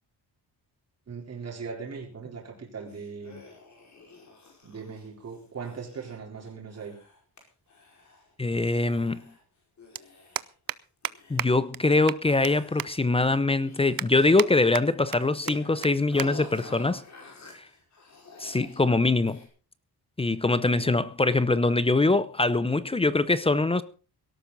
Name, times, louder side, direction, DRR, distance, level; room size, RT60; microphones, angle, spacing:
voice 1, 1.1-3.4 4.6-7.0 20.5-20.9, right 5 dB, 40° right, 3.9 m, -39 dB
sound 1, 2.9-7.4 7.7-8.3 8.7-9.4 9.8-10.7 11.0-12.0 12.2-13.2 13.5-18.8 19.2-19.5, left 3 dB, 45° left, 5.2 m, -49 dB
sound 2, 7.7-7.8 9.2-9.3 9.4-9.6 9.9-10.0 10.4-10.8 11.0-11.1 11.4-11.5 11.7-11.8 12.1-12.5 12.8-12.9 13.4-13.5 14.0-14.5 14.7-15.2 15.5-15.6 15.8-15.9 16.2-16.3 16.6-16.8 17.6-17.9, right 13 dB, 60° right, 0.6 m, -32 dB
voice 2, 8.4-9.2 11.3-17.0 18.4-19.4 20.2-23.8, left 3 dB, 15° left, 0.6 m, -23 dB
17.5 x 13.0 x 4.0 m
wide cardioid pair, 165°, 39 cm